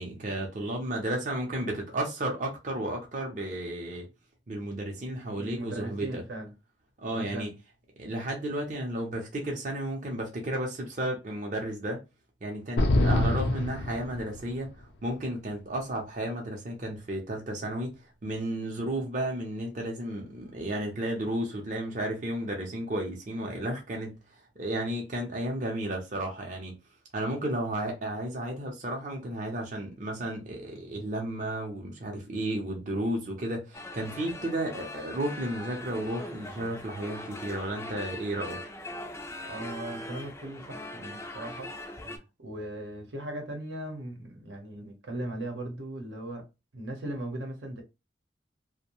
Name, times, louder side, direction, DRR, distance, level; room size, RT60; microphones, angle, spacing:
voice 1, 0.0-4.0 4.5-6.2 7.0-7.5 8.0-12.0 12.4-26.8 27.1-38.6, right 1 dB, 45° right, 0.6 m, -33 dB
voice 2, 5.4-6.5 7.1-7.5 19.2-19.3 39.4-46.4 46.7-47.8, right 1 dB, 85° right, 0.8 m, -38 dB
sound 1, 12.8-14.7, left 1 dB, 75° left, 0.5 m, -25 dB
sound 2, 33.7-42.2, left 1 dB, 15° left, 0.3 m, -41 dB
2.6 x 2.1 x 2.9 m
head